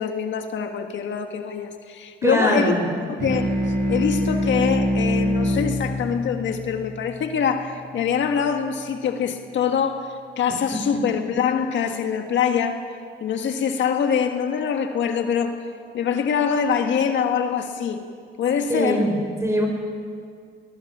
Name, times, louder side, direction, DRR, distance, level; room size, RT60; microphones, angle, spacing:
voice 1, 0.0-2.7 3.1-3.5 3.9-12.8 13.2-15.6 15.9-18.0 18.4-19.0, left 7 dB, 70° left, 5 dB, 1.7 m, -24 dB
voice 2, 2.2-2.9 10.7-11.1 18.7-19.7, equal, 15° right, 2 dB, 5.9 m, -23 dB
sound 1, 3.2-8.1, equal, 55° right, 6.2 m, -25 dB
21.5 x 20.0 x 7.5 m, 2.1 s
cardioid pair, 90°, 20 cm